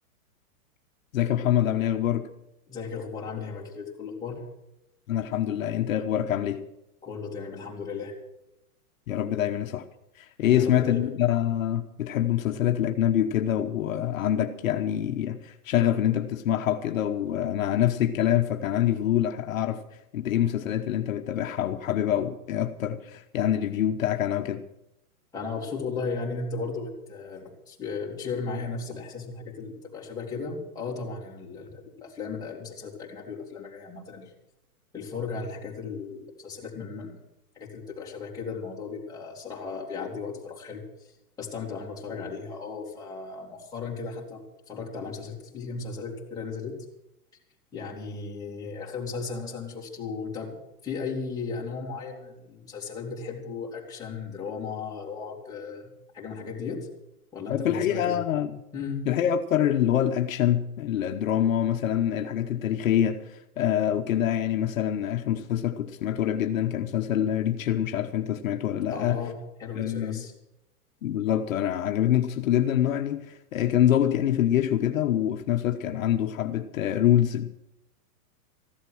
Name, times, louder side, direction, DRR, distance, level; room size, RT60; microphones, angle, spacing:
voice 1, 1.1-2.3 5.1-6.6 9.1-9.8 10.2-19.8 20.1-24.6 57.5-58.5 59.1-69.2 69.7-70.2 71.0-77.5, left 11 dB, 60° left, 1.1 m, -25 dB
voice 2, 2.7-4.4 7.0-8.2 10.4-11.0 25.3-34.3 34.9-37.2 37.5-44.4 44.7-46.8 47.7-50.5 50.8-56.9 57.3-58.2 58.7-59.1 68.9-70.3, left 4 dB, 10° left, 2.8 m, -36 dB
15.0 x 11.5 x 6.3 m
hypercardioid pair, 165°, 45 cm